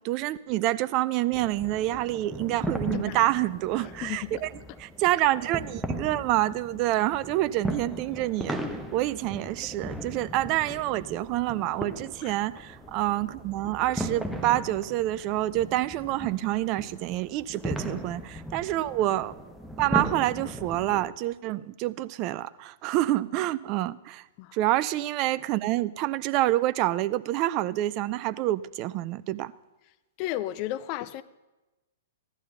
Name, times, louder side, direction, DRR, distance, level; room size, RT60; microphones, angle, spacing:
voice 1, 0.0-4.5 4.8-8.6 8.9-19.3 19.8-24.2 24.5-29.5, right 15 dB, 35° right, 0.4 m, -27 dB
sound 1, 1.3-21.1, equal, ahead, 1.0 m, -37 dB
voice 2, 4.0-4.5 12.2-12.4 17.9-18.0 24.4-24.6 30.2-31.2, left 14 dB, 35° left, 0.5 m, -34 dB
14.5 x 11.5 x 5.5 m
figure-of-eight pair, 105°, 0 cm